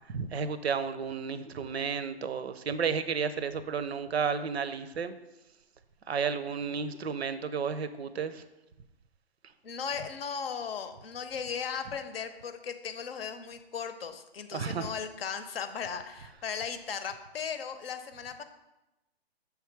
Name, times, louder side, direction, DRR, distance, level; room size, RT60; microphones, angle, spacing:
voice 1, 0.1-5.1 6.1-8.4 14.5-14.9, right 6 dB, 90° right, 13 dB, 0.6 m, -32 dB
voice 2, 9.6-18.4, left 6 dB, 70° left, 9 dB, 0.7 m, -37 dB
6.9 x 3.5 x 4.5 m, 0.98 s
hypercardioid pair, 140°, 31 cm